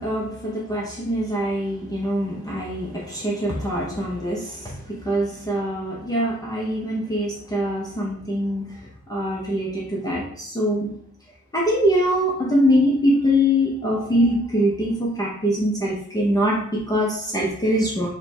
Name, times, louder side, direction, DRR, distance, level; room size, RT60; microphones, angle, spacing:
voice 1, 0.0-8.8 9.1-10.9 11.5-18.1, equal, 10° left, -5 dB, 0.5 m, -23 dB
4.3 x 2.2 x 3.1 m, 0.64 s
wide cardioid pair, 140°, 31 cm